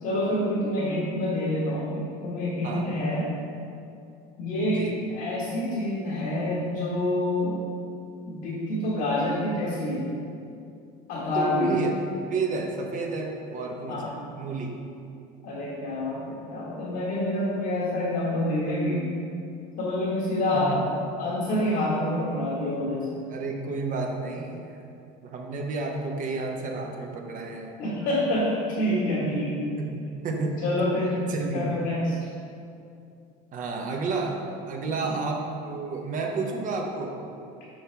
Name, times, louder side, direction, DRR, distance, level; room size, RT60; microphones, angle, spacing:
voice 1, 0.0-3.3 4.4-7.6 8.2-10.1 11.1-11.7 13.9-14.1 15.4-19.1 19.8-20.9 21.2-23.2 27.8-29.5 30.6-31.2 31.5-32.2 34.8-35.1, left 1 dB, 70° left, -6 dB, 1.5 m, -27 dB
voice 2, 11.3-11.9 12.3-14.8 20.5-20.8 23.3-24.7 25.2-27.8 29.2-29.4 29.8-29.9 30.2-30.6 31.3-31.8 33.5-37.2, right 3 dB, 45° right, 1 dB, 0.9 m, -31 dB
6.4 x 5.8 x 3.4 m, 2.5 s
supercardioid pair, 100°, 18 cm